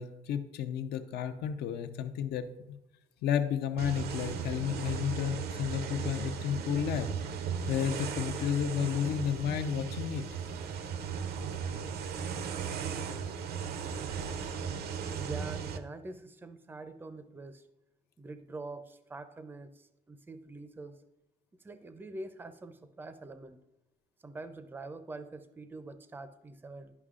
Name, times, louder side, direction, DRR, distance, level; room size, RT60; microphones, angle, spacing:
voice 1, 0.0-2.8 3.2-7.1 7.7-10.2, left 8 dB, 75° left, 9 dB, 0.6 m, -32 dB
sound 1, 3.8-15.8, right 6 dB, 70° right, 0.6 m, -36 dB
voice 2, 15.1-17.6 18.2-20.9 21.6-23.6 24.2-26.9, right 2 dB, 10° right, 10 dB, 0.5 m, -45 dB
11.0 x 5.5 x 2.5 m, 0.91 s
cardioid pair, 110°, 17 cm